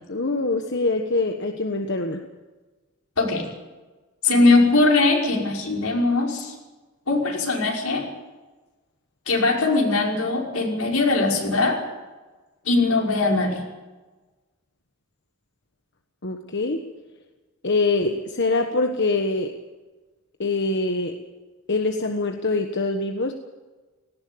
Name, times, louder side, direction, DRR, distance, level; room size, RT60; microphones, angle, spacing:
voice 1, 0.1-2.2 16.2-16.8 17.6-19.5 20.4-21.2 21.7-23.3, left 3 dB, 55° left, 5 dB, 1.4 m, -24 dB
voice 2, 3.2-3.5 4.2-6.5 7.1-8.1 9.3-11.8 12.7-13.6, left 3 dB, 80° left, 0 dB, 5.5 m, -20 dB
18.5 x 17.5 x 8.6 m, 1.2 s
head